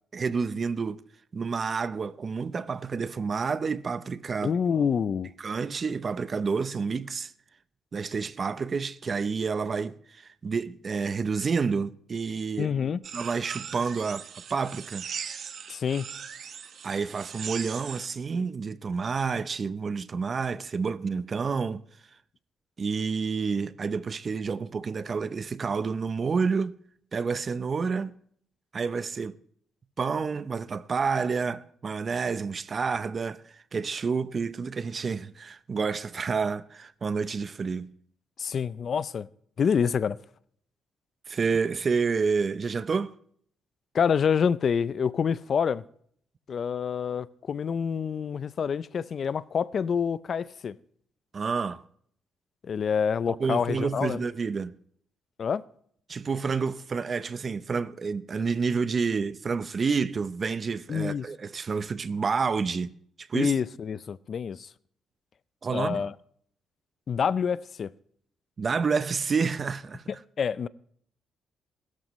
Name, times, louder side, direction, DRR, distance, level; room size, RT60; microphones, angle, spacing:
voice 1, 0.1-1.0 1.3-4.5 5.4-7.3 7.9-12.7 13.1-15.0 16.8-21.8 22.8-26.7 27.1-28.1 28.7-29.4 30.0-37.9 41.3-43.1 51.3-51.8 53.3-54.7 56.1-62.9 63.2-63.5 65.6-66.1 68.6-70.0, right 5 dB, 40° right, 0.6 m, -29 dB
voice 2, 4.4-5.3 12.6-13.0 15.7-16.1 38.4-39.3 39.6-40.2 43.9-45.8 46.5-50.7 52.6-54.2 55.4-55.6 60.9-61.3 63.3-64.7 65.7-66.1 67.1-67.9 70.4-70.7, left 7 dB, 50° left, 0.5 m, -27 dB
sound 1, 13.0-18.1, right 7 dB, 60° right, 1.1 m, -39 dB
22.0 x 13.0 x 3.1 m
cardioid pair, 90°, 0 cm